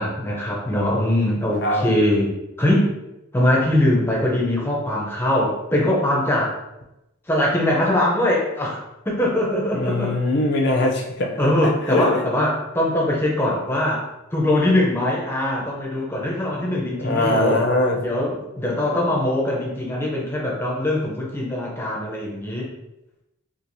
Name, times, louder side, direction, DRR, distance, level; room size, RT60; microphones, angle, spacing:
voice 1, 0.0-2.9 3.3-6.5 7.3-8.8 9.1-10.1 11.4-14.0 14.3-17.6 18.0-22.7, left 1 dB, 10° left, -3 dB, 0.6 m, -22 dB
voice 2, 9.7-11.3 11.6-12.2 17.0-18.0, left 2 dB, 55° left, 1 dB, 0.6 m, -21 dB
4.4 x 2.4 x 2.7 m, 0.91 s
head